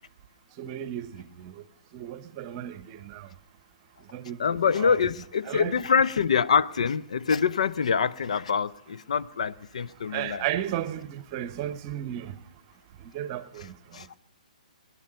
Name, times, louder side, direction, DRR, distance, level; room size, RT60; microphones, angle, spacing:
voice 1, 0.6-1.6 1.9-3.3 4.1-4.4 4.7-5.0 5.5-5.7 10.1-12.3 13.0-13.7, right 11 dB, 30° right, 0.9 m, -34 dB
voice 2, 4.4-10.4 13.9-14.1, left 6 dB, 60° left, 0.5 m, -25 dB
20.0 x 10.5 x 6.6 m
figure-of-eight pair, 125°, 4 cm